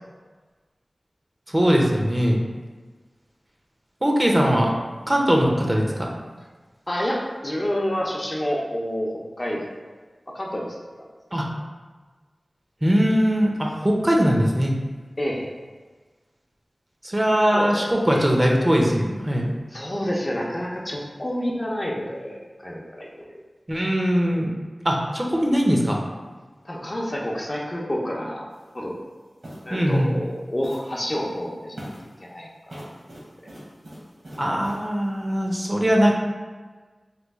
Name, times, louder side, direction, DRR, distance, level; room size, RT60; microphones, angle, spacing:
voice 1, 1.5-2.4 4.0-4.7 5.1-6.1 11.3-11.5 12.8-14.7 17.0-19.4 23.7-24.5 24.8-26.0 29.7-30.1 34.4-36.1, equal, 30° right, -1 dB, 0.6 m, -20 dB
voice 2, 6.9-9.9 10.3-11.1 15.2-15.5 17.4-18.3 19.7-23.4 26.6-28.4 28.7-28.9 29.6-31.9 32.3-32.5 32.7-32.8, equal, 40° left, -3 dB, 0.6 m, -29 dB
sound 1, 28.5-28.7 29.4-29.8 30.6-31.0 31.7-32.2 32.7-34.9, equal, 70° right, 1.1 m, -41 dB
3.1 x 2.3 x 3.5 m, 1.3 s
wide cardioid pair, 40°, 0 cm